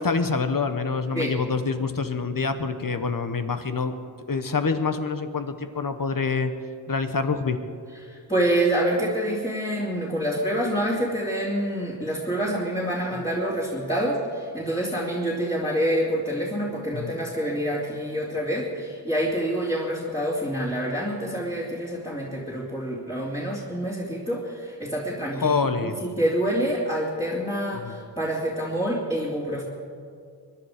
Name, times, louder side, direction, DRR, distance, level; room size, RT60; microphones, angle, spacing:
voice 1, 0.0-3.9 4.3-6.5 6.9-7.6 13.2-13.3 16.9-17.1 25.4-26.0 27.7-28.0, left 4 dB, 50° left, 9 dB, 1.3 m, -26 dB
voice 2, 8.0-29.6, right 1 dB, 10° left, -6 dB, 2.9 m, -27 dB
23.5 x 11.5 x 5.1 m, 2.4 s
wide cardioid pair, 75°, 43 cm